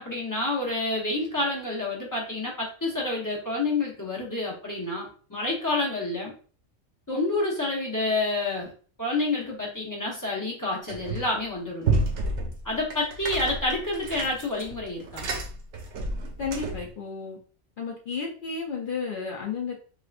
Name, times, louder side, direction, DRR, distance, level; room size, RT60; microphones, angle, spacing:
voice 1, 0.0-6.3 7.1-8.7 9.0-12.0 12.6-15.3, left 2 dB, 20° left, -3 dB, 0.7 m, -28 dB
sound 1, 10.9-11.4 11.8-16.9, right 2 dB, 65° right, 0.9 m, -30 dB
voice 2, 16.4-17.4 17.8-19.8, left 5 dB, 55° left, -2 dB, 0.6 m, -32 dB
3.1 x 2.8 x 2.4 m, 0.40 s
omnidirectional pair, 1.4 m